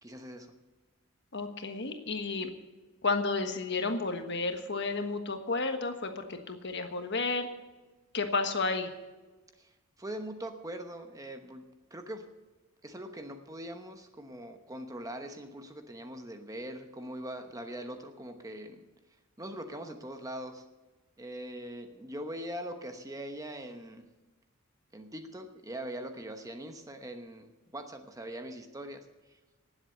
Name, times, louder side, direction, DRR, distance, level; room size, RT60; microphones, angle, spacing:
voice 1, 0.0-0.5 9.6-9.7 10.0-11.6 11.9-12.3 12.8-18.8 19.4-20.6 21.2-24.1 24.9-29.1, right 1 dB, 15° right, 6 dB, 1.0 m, -42 dB
voice 2, 1.3-2.5 3.0-7.5 8.1-8.9, left 3 dB, 55° left, 6 dB, 1.4 m, -32 dB
18.5 x 7.9 x 6.7 m, 1.2 s
head